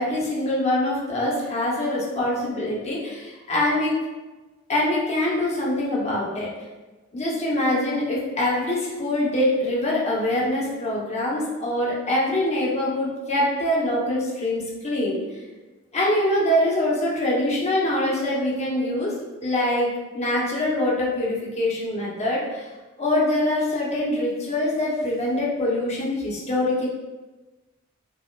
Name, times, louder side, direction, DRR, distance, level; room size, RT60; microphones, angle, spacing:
voice 1, 0.0-3.9 4.7-6.5 7.1-15.2 15.9-19.1 19.4-22.6 23.0-26.8, left 1 dB, 30° left, -5 dB, 0.7 m, -24 dB
4.1 x 2.0 x 2.2 m, 1.2 s
head